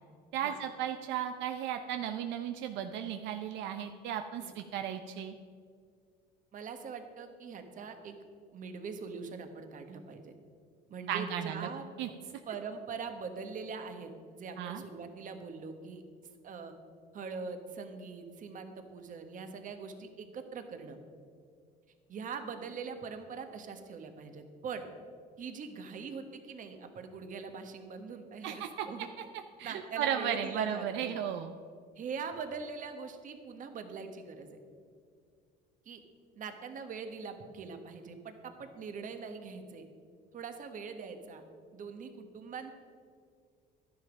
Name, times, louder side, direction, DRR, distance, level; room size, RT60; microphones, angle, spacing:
voice 1, 0.3-5.3 11.1-11.7 12.0-12.1 14.6-14.8 28.4-28.9 29.6-31.5, right 9 dB, 75° right, 7 dB, 0.7 m, -35 dB
voice 2, 6.5-8.1 8.5-10.3 10.9-11.9 12.5-16.0 16.4-16.7 17.1-21.0 22.1-24.9 25.4-29.1 29.6-31.1 32.0-34.6 35.8-36.0 36.3-39.9 40.3-41.4 41.7-42.7, right 5 dB, 45° right, 7 dB, 1.4 m, -42 dB
11.5 x 10.0 x 5.2 m, 2.2 s
cardioid pair, 120°, 19 cm